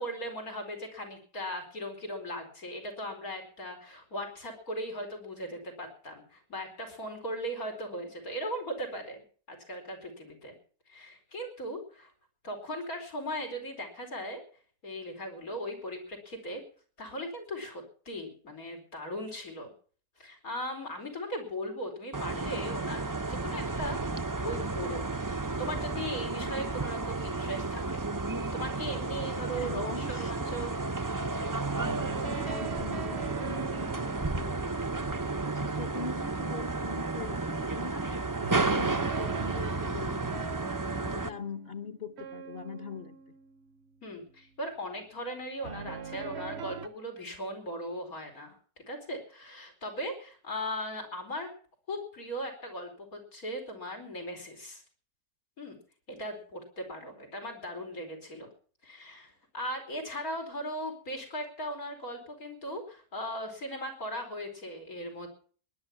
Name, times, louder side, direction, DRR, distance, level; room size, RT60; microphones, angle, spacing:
voice 1, 0.0-10.5 10.9-12.1 12.4-14.4 14.8-16.6 17.0-19.7 20.2-23.0 23.3-25.0 25.4-28.0 28.5-30.7 31.7-32.0 44.0-51.5 51.9-54.8 55.6-55.8 56.1-58.5 58.8-65.3, equal, 90° left, 3 dB, 5.0 m, -38 dB
sound 1, 22.1-41.3, right 3 dB, 20° right, 0.6 m, -32 dB
voice 2, 29.5-30.7 32.2-34.8 35.3-40.7 41.0-43.2, left 4 dB, 45° left, 9 dB, 1.3 m, -42 dB
sound 2, 31.8-35.9 38.4-44.0 45.6-46.9, right 7 dB, 55° right, 1.1 m, -42 dB
19.5 x 11.0 x 5.9 m, 0.44 s
omnidirectional pair, 1.5 m